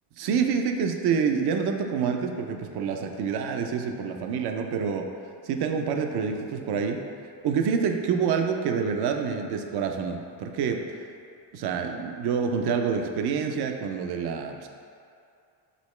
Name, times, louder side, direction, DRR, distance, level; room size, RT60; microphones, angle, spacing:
voice 1, 0.2-5.1 5.5-7.0 7.4-11.0 11.5-14.7, right 6 dB, 60° right, 4 dB, 0.6 m, -27 dB
5.3 x 2.9 x 3.2 m, 2.4 s
cardioid pair, 90°, 44 cm